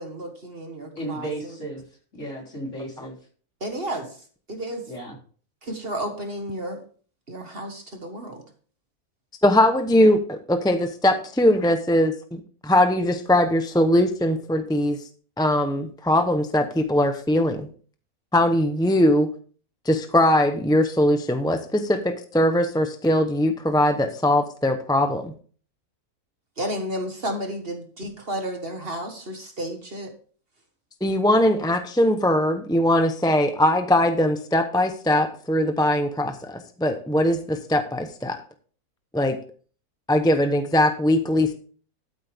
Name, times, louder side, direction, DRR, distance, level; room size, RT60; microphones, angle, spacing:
voice 1, 0.0-1.6 3.6-4.2 4.5-4.8 5.6-6.8 7.3-8.4 26.6-30.1, right 1 dB, 40° right, 4 dB, 1.8 m, -32 dB
voice 2, 1.0-1.8 2.1-3.2 4.9-5.2, right 1 dB, 50° left, -1 dB, 4.0 m, -34 dB
voice 3, 9.4-15.0 15.4-17.7 18.3-19.3 19.9-25.3 31.0-38.4 39.1-39.4 40.1-41.5, left 1 dB, 5° left, 7 dB, 0.5 m, -21 dB
12.5 x 8.2 x 3.5 m, 0.42 s
omnidirectional pair, 1.6 m